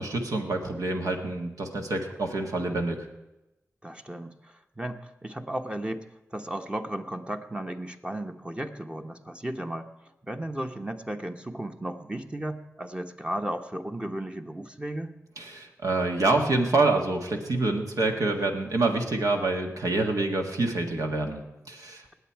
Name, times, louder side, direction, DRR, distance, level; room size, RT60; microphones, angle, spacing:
voice 1, 0.0-3.0 15.4-22.1, right 2 dB, 75° right, 3 dB, 1.7 m, -27 dB
voice 2, 3.8-9.9 10.2-15.1, right 1 dB, 15° right, 5 dB, 1.1 m, -35 dB
19.0 x 8.0 x 4.6 m, 0.96 s
cardioid pair, 45°, 6 cm